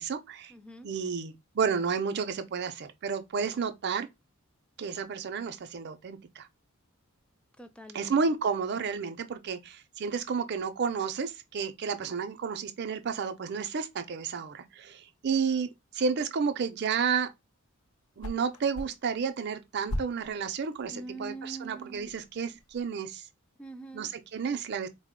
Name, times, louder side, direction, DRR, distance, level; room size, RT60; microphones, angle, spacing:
voice 1, 0.0-0.5 0.8-4.1 4.8-6.5 7.9-15.7 15.9-17.3 18.2-23.2 23.9-24.9, right 5 dB, 50° right, 0.5 m, -31 dB
voice 2, 0.5-0.9 7.6-8.2 20.9-22.1 23.6-24.1, right 3 dB, 5° left, 0.3 m, -43 dB
sound 1, 17.8-22.8, equal, 75° left, 0.6 m, -42 dB
3.9 x 2.1 x 3.6 m
head